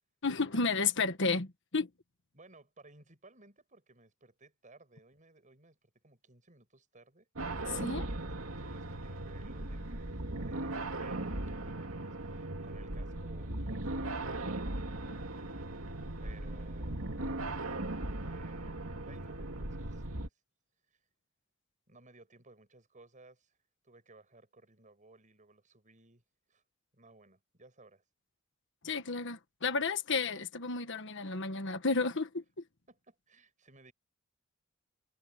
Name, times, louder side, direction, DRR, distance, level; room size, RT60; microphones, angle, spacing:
voice 1, 0.2-1.5 1.7-1.9 7.8-8.0 28.8-32.4, left 4 dB, 60° left, 1.5 m, -32 dB
voice 2, 2.3-7.3 7.7-14.5 16.2-17.1 18.1-20.3 21.9-23.6 23.8-26.2 26.5-26.6 26.9-28.0 32.9-33.9, right 2 dB, 35° right, 6.9 m, -60 dB
sound 1, 7.4-20.3, right 2 dB, 75° right, 2.8 m, -38 dB
head